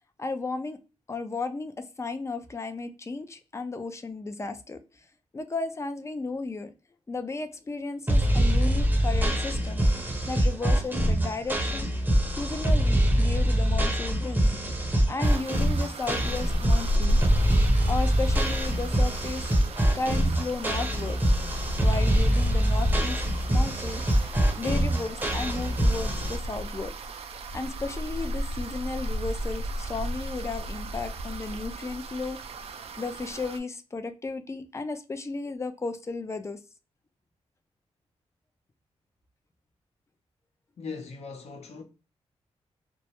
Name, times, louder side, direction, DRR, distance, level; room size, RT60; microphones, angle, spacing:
voice 1, 0.2-0.8 1.1-4.8 5.3-6.7 7.1-9.9 10.3-11.9 12.3-14.4 15.1-17.2 17.9-19.5 19.9-21.2 21.8-23.2 23.5-24.0 24.6-26.9 27.5-32.4 33.0-36.6, left 3 dB, 25° left, 0.4 m, -34 dB
sound 1, 8.1-26.4, equal, 15° right, 0.7 m, -24 dB
sound 2, 15.2-33.6, right 1 dB, 60° right, 0.4 m, -34 dB
voice 2, 40.8-41.8, left 4 dB, 65° left, 0.7 m, -39 dB
2.2 x 2.0 x 2.8 m
cardioid pair, 85°, 12 cm